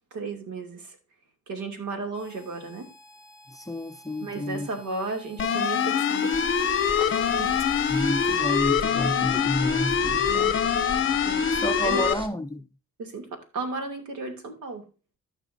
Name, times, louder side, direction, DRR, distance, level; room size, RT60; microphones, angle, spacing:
voice 1, 0.1-1.0 1.5-2.9 4.2-6.3 7.2-7.6 10.3-10.6 11.2-11.5 11.8-12.0 13.0-14.8, right 3 dB, 75° right, 2.8 m, -34 dB
Harmonica, 2.1-8.5, right 3 dB, 35° right, 5.3 m, -51 dB
voice 2, 3.5-4.7 7.9-10.6 11.5-12.7, left 1 dB, 10° left, 0.7 m, -30 dB
sound 1, 5.4-12.1, left 7 dB, 40° left, 0.8 m, -24 dB
sound 2, 6.3-12.3, right 1 dB, 15° right, 1.7 m, -39 dB
14.0 x 5.9 x 2.7 m
cardioid pair, 90°, 30 cm